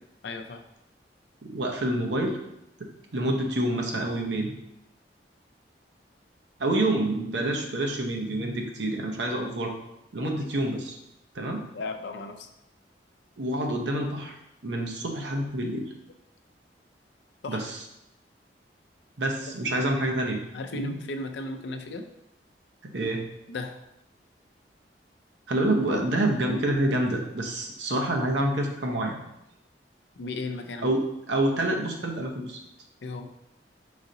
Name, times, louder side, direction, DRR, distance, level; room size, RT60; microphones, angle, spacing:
voice 1, 0.2-0.6 10.2-10.3 11.7-12.5 17.4-17.6 20.5-22.1 23.5-23.8 30.2-30.9 33.0-33.3, left 2 dB, 70° left, 6 dB, 0.5 m, -35 dB
voice 2, 1.4-2.4 3.1-4.5 6.6-9.8 10.1-11.0 11.3-11.6 13.4-14.3 14.6-15.8 17.5-17.8 19.2-20.4 20.7-21.0 22.8-23.2 25.5-29.2 30.8-31.0 31.3-32.6, right 1 dB, 80° right, 2 dB, 0.8 m, -27 dB
4.9 x 2.8 x 3.8 m, 0.86 s
head